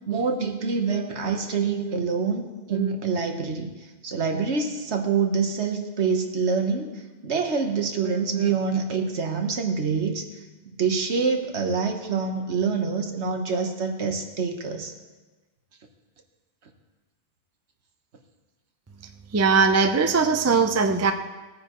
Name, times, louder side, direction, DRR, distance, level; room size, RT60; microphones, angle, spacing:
voice 1, 0.1-3.7 4.0-6.9 7.2-10.2 10.8-14.9, right 5 dB, 70° right, 4 dB, 1.4 m, -26 dB
voice 2, 19.3-21.1, right 4 dB, 20° right, 6 dB, 0.4 m, -20 dB
18.0 x 9.4 x 3.0 m, 1.2 s
omnidirectional pair, 1.2 m